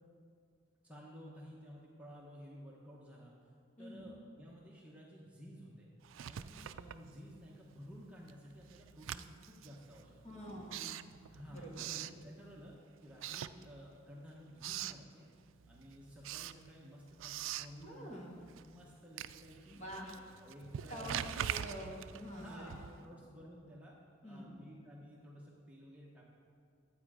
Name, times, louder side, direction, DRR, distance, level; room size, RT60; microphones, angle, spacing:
voice 1, 0.8-3.3 3.8-5.9 6.2-10.4 11.3-12.8 13.0-15.3 15.7-18.2 18.6-21.7 22.3-24.0 24.2-26.2, equal, 5° right, -5 dB, 1.1 m, -53 dB
Writing, 6.0-7.6 7.9-12.7 13.1-14.1 14.4-15.1 15.5-23.1, right 10 dB, 75° right, 0.3 m, -44 dB
voice 2, 10.2-11.0 11.5-11.8 17.8-18.3 19.7-20.2 20.9-22.8 24.2-24.7, equal, 35° left, -3 dB, 2.0 m, -47 dB
11.5 x 8.5 x 5.0 m, 2.3 s
head